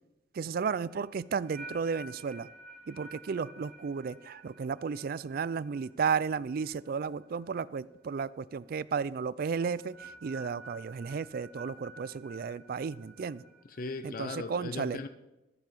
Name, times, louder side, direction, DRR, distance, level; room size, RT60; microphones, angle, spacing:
voice 1, 0.3-2.5 2.9-13.4 14.0-15.0, right 5 dB, 50° right, 0.3 m, -33 dB
sound 1, 0.9-7.7 8.0-8.4 9.6-14.2, right 2 dB, 5° right, 2.7 m, -51 dB
voice 2, 13.7-15.1, left 3 dB, 50° left, 0.5 m, -38 dB
13.5 x 6.8 x 5.4 m
head